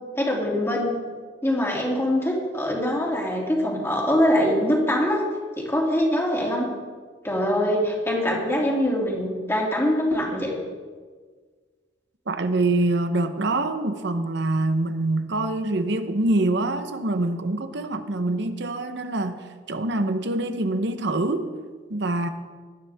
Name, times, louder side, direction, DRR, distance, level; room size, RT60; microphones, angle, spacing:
voice 1, 0.2-0.9 1.4-5.2 5.6-6.7 7.2-10.5, left 1 dB, 15° left, -2 dB, 2.9 m, -23 dB
voice 2, 12.3-21.5 21.9-22.3, right 2 dB, 65° right, 9 dB, 1.0 m, -25 dB
19.0 x 12.5 x 3.6 m, 1.5 s
head